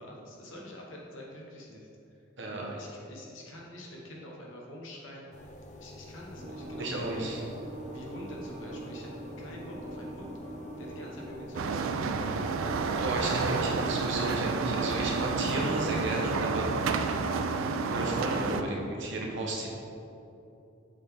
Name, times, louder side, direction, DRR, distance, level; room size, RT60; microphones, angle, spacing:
voice 1, 0.0-2.2 2.6-7.4 7.9-9.1 9.4-12.5, left 1 dB, 70° left, -2 dB, 1.2 m, -46 dB
sound 1, 5.3-16.8, left 1 dB, 35° left, 0.5 m, -48 dB
sound 2, 6.4-13.7, right 1 dB, 40° right, 0.8 m, -43 dB
voice 2, 6.8-7.4 13.0-17.5 17.9-19.7, right 2 dB, 65° right, -1 dB, 1.1 m, -33 dB
sound 3, 11.6-18.6, right 4 dB, 80° right, 0.4 m, -30 dB
7.4 x 4.0 x 3.5 m, 2.8 s
head